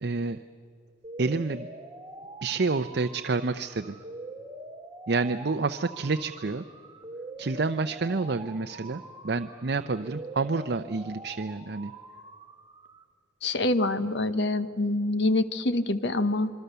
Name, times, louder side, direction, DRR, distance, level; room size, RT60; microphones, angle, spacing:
voice 1, 0.0-0.4 1.2-1.7 2.4-4.0 5.1-6.6 7.4-11.9, right 3 dB, 60° right, 9 dB, 0.6 m, -29 dB
sound 1, 1.0-13.0, right 2 dB, 20° right, 1.3 m, -44 dB
voice 2, 13.4-16.5, left 2 dB, 65° left, 12 dB, 1.1 m, -26 dB
26.5 x 23.5 x 6.9 m, 2.4 s
head